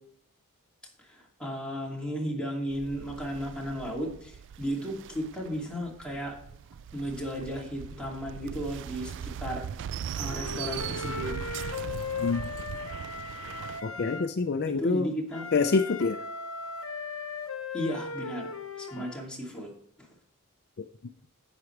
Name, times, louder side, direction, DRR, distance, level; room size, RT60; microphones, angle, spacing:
voice 1, 1.0-6.3 6.9-9.6 10.1-11.3 14.7-15.5 17.7-19.7 20.0-20.1, equal, 5° left, -3 dB, 2.5 m, -35 dB
sound 1, 2.7-13.8, right 8 dB, 55° right, 0.3 m, -40 dB
Wind instrument woodwind instrument, 10.1-14.3 15.3-19.2, left 5 dB, 65° left, 1.0 m, -37 dB
voice 2, 12.2-12.5 13.8-15.1 15.5-16.2 19.0-19.1 20.8-20.9, left 4 dB, 50° left, 8 dB, 0.5 m, -26 dB
10.5 x 8.1 x 3.3 m, 0.72 s
head